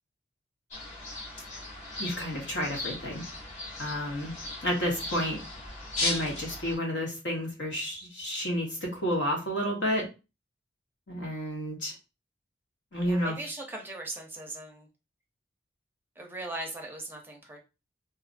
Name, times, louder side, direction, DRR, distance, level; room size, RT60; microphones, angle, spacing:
sound 1, 0.7-6.8, left 2 dB, 45° left, 0.9 m, -37 dB
voice 1, 2.0-3.2 3.8-4.3 4.6-5.4 6.0-10.1 11.1-11.9 12.9-13.4, equal, 75° left, -1 dB, 1.2 m, -30 dB
voice 2, 13.1-14.9 16.2-17.6, right 2 dB, 10° right, 1 dB, 0.6 m, -39 dB
2.6 x 2.4 x 2.5 m, 0.28 s
head